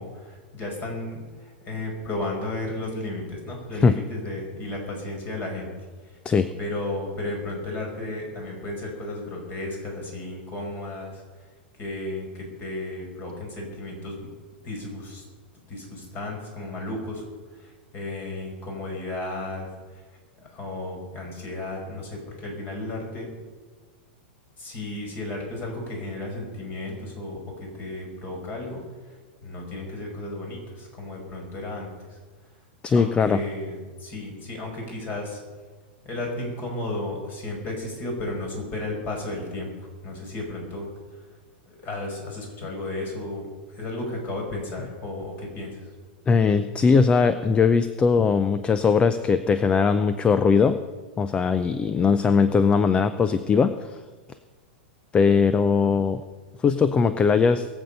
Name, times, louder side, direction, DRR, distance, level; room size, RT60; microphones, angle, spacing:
voice 1, 0.0-5.7 6.6-11.2 11.8-14.3 14.6-15.2 15.7-17.2 17.6-19.7 20.5-23.3 24.6-28.8 29.4-32.2 32.9-35.4 36.0-39.7 40.0-40.9 41.8-45.9, left 2 dB, 35° left, 1 dB, 5.3 m, -33 dB
voice 2, 32.8-33.4 46.3-50.8 51.2-54.0 55.1-56.2 56.6-57.7, left 5 dB, 20° left, 12 dB, 0.5 m, -20 dB
22.0 x 7.9 x 5.5 m, 1.4 s
hypercardioid pair, 125°, 6 cm